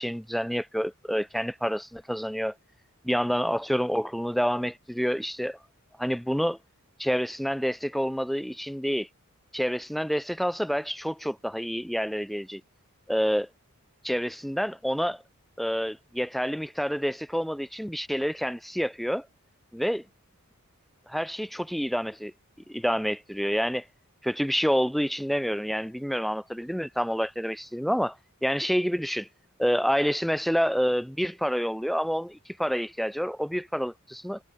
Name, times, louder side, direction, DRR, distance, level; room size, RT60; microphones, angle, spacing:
voice 1, 0.0-2.5 3.0-5.6 6.0-6.6 7.0-9.1 9.5-12.6 13.1-13.5 14.0-15.2 15.6-19.3 19.7-20.0 21.1-22.3 22.7-23.8 24.2-28.2 28.4-29.3 29.6-34.4, equal, ahead, 1.2 m, -28 dB
head